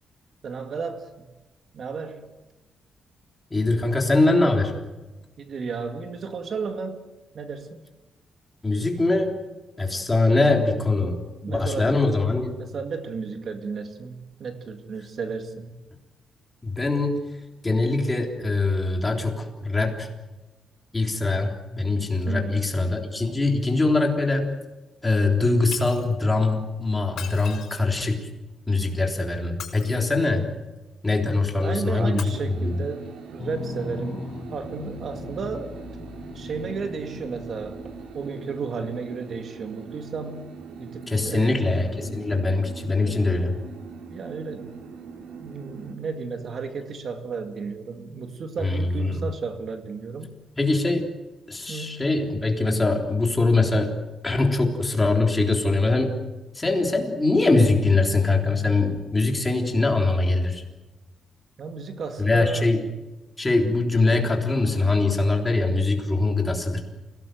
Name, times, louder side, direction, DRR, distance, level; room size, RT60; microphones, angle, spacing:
voice 1, 0.4-1.3 1.7-2.3 5.4-7.8 10.5-11.2 11.4-12.0 12.5-15.8 22.3-22.6 31.6-35.8 36.3-37.9 38.1-41.8 44.0-44.8 45.4-50.4 51.7-52.1 61.6-62.7, right 5 dB, 50° right, 6 dB, 2.1 m, -33 dB
voice 2, 3.5-4.7 8.6-9.4 9.8-11.2 11.5-12.6 16.6-17.2 17.6-20.1 20.9-24.5 25.0-28.3 28.7-30.5 31.0-32.3 32.6-32.7 41.1-43.6 48.6-49.2 50.6-51.1 51.5-54.0 54.2-56.2 56.5-60.6 62.2-62.8 63.4-66.8, left 3 dB, 15° left, 1 dB, 3.6 m, -22 dB
Shatter, 25.7-26.1 27.1-28.1 29.4-30.4 32.1-32.2, left 9 dB, 70° left, 4.6 m, -39 dB
sound 1, 32.3-46.0, right 5 dB, 80° right, 3.3 m, -42 dB
sound 2, 33.4-38.2, left 3 dB, 30° left, 1.7 m, -39 dB
28.5 x 18.0 x 7.8 m, 1.1 s
cardioid pair, 150°, 0 cm